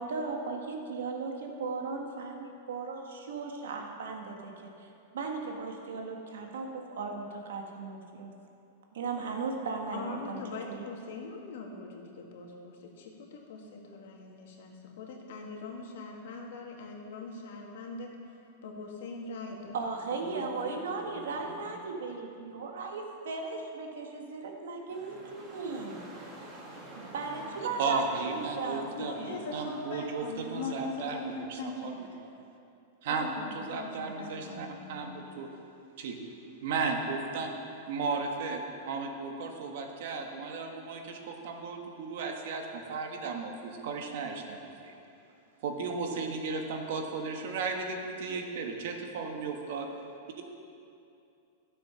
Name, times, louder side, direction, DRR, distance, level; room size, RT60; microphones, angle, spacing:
voice 1, 0.0-4.9 5.1-8.3 8.9-10.4 10.7-10.9 19.7-26.0 27.0-28.0 28.3-29.3, right 4 dB, 90° right, 2 dB, 1.6 m, -37 dB
voice 2, 9.9-18.1 18.6-19.8 20.2-21.7 24.3-24.4 29.0-32.0 33.1-34.9, left 3 dB, 65° left, 0 dB, 2.0 m, -41 dB
sound 1, 24.9-31.4, right 2 dB, 20° right, 1.9 m, -48 dB
voice 3, 27.8-32.3 33.0-35.5 36.0-36.2 36.6-37.5 37.9-44.9 45.6-49.8, right 4 dB, 60° right, 3 dB, 1.5 m, -35 dB
13.0 x 7.6 x 5.7 m, 2.6 s
supercardioid pair, 160°, 0 cm